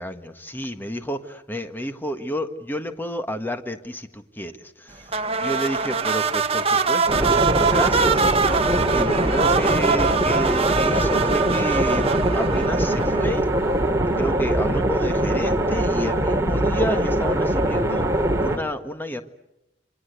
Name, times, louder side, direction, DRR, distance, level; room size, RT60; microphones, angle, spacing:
voice 1, 0.0-4.5 5.4-8.1 8.9-12.1 12.3-13.4 14.2-18.1 18.4-19.2, equal, 10° left, 7 dB, 1.6 m, -30 dB
sound 1, 5.1-13.6, right 5 dB, 35° right, 1.2 m, -23 dB
sound 2, 7.1-18.6, right 1 dB, 15° right, 2.5 m, -22 dB
28.5 x 25.0 x 8.2 m, 0.92 s
head